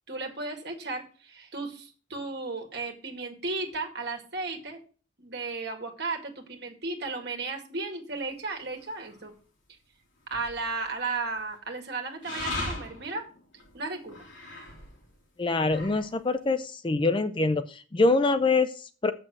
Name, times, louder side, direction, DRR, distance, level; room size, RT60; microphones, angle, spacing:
voice 1, 0.1-4.8 5.2-9.3 10.3-13.2 13.7-14.2, right 3 dB, 55° right, 3 dB, 2.1 m, -34 dB
sound 1, 8.8-9.2 10.2-11.0 12.2-15.1 15.5-16.2, left 2 dB, 70° left, 3.6 m, -38 dB
voice 2, 15.4-19.1, left 3 dB, 25° left, 11 dB, 0.4 m, -25 dB
7.3 x 6.7 x 6.3 m, 0.39 s
head